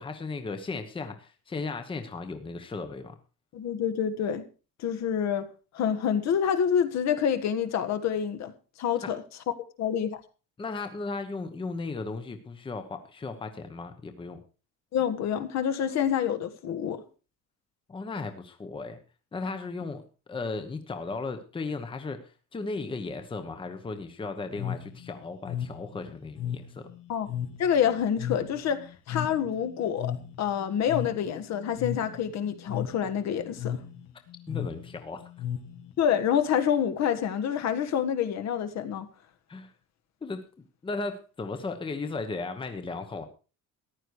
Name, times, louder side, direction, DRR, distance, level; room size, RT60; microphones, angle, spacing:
voice 1, 0.0-3.2 9.0-9.1 10.6-14.4 17.9-19.0 19.3-20.0 20.3-26.9 34.5-35.3 39.5-39.7 40.2-43.3, left 3 dB, 15° left, 1.1 m, -36 dB
voice 2, 3.5-4.4 4.8-5.5 5.7-8.5 8.8-9.2 9.8-10.2 14.9-17.0 27.1-27.3 27.6-33.8 36.0-39.1, left 8 dB, 50° left, 1.6 m, -27 dB
sound 1, 24.5-36.2, left 9 dB, 80° left, 2.7 m, -36 dB
14.5 x 11.0 x 4.8 m
cardioid pair, 170°, 34 cm